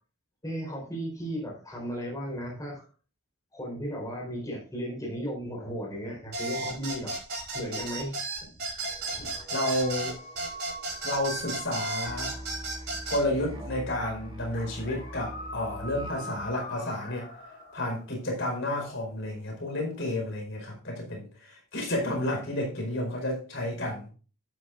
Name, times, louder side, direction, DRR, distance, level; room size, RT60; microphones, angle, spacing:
voice 1, 0.4-2.8 3.5-7.2 7.5-8.5 9.1-9.5, equal, 15° left, -2 dB, 4.3 m, -35 dB
sound 1, 6.3-13.2, right 2 dB, 45° right, 5.2 m, -34 dB
sound 2, 8.8-12.9 14.0-18.2 18.8-20.3, left 1 dB, 40° left, 5.0 m, -44 dB
voice 2, 9.5-10.2 11.0-12.3 13.1-17.3 17.7-24.1, left 1 dB, 60° left, 1 dB, 4.7 m, -31 dB
Musical instrument, 12.0-16.5, equal, 20° right, 2.2 m, -42 dB
12.0 x 10.0 x 2.5 m, 0.36 s
head